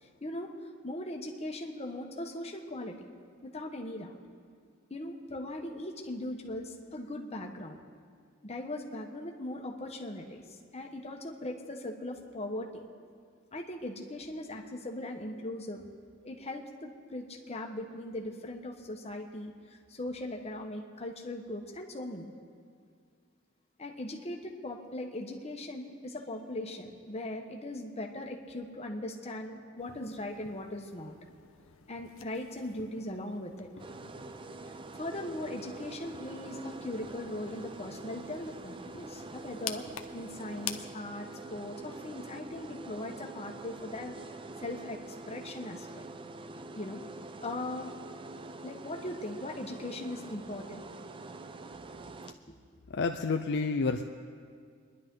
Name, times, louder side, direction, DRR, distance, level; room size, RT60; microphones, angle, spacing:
voice 1, 0.0-3.1 3.4-4.2 4.9-7.8 8.4-12.9 13.5-15.8 16.2-22.3 23.8-31.1 31.9-33.7 34.9-44.1 44.6-45.0 45.3-46.0 46.7-47.0 47.4-47.9 48.6-50.8, left 1 dB, 30° left, 1 dB, 1.3 m, -39 dB
sound 1, 29.8-40.8, left 9 dB, 90° left, 0.7 m, -48 dB
sound 2, 33.8-52.3, right 2 dB, 25° right, 0.4 m, -45 dB
voice 2, 52.9-54.0, left 4 dB, 60° left, 5 dB, 0.5 m, -29 dB
26.5 x 11.0 x 3.8 m, 2.1 s
head